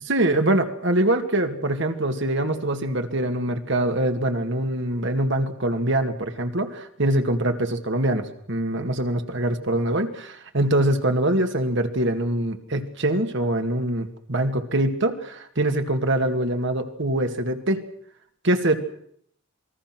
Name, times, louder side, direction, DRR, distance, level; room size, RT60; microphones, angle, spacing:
voice 1, 0.1-17.8 18.4-18.8, right 1 dB, 65° right, 5 dB, 2.3 m, -24 dB
27.5 x 20.5 x 6.3 m, 0.66 s
head